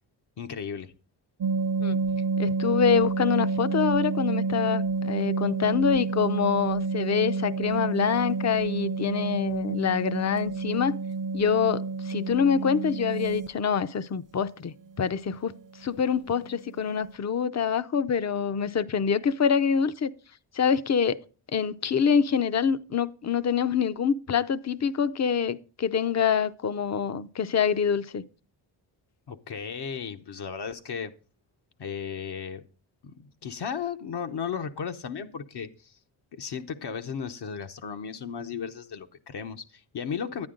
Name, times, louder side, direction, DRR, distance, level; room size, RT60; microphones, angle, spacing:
voice 1, 0.4-0.9 29.3-31.1 31.8-32.6 33.0-36.0 36.3-40.5, left 7 dB, 60° left, 1.0 m, -35 dB
sound 1, 1.4-13.5 15.4-15.5 15.8-16.0 16.4-16.5 16.8-17.1, right 4 dB, 45° right, 0.7 m, -29 dB
voice 2, 2.4-11.0 11.3-15.5 15.8-20.1 20.5-21.2 21.5-28.2, left 7 dB, 35° left, 0.7 m, -25 dB
10.5 x 9.5 x 3.8 m
cardioid pair, 80°, 45 cm